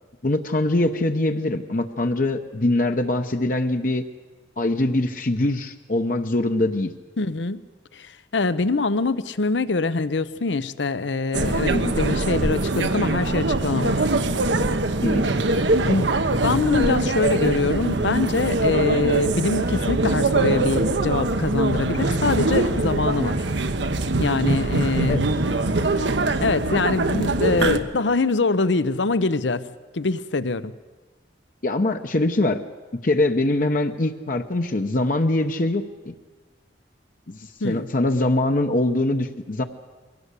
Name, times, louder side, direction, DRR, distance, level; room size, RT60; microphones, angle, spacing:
voice 1, 0.2-4.0 4.6-6.9 11.7-11.9 15.0-15.2 25.1-25.2 31.6-32.6 33.0-36.1 37.3-37.4 37.6-39.6, left 2 dB, 50° left, 6 dB, 0.8 m, -23 dB
voice 2, 7.2-7.6 7.9-14.0 15.9-16.1 16.4-23.4 24.2-25.2 26.4-29.6 29.9-30.7 37.6-37.9, left 3 dB, 85° left, 15 dB, 0.8 m, -24 dB
sound 1, 11.3-27.8, right 2 dB, 80° right, 1.1 m, -22 dB
22.0 x 17.0 x 8.3 m, 1.3 s
head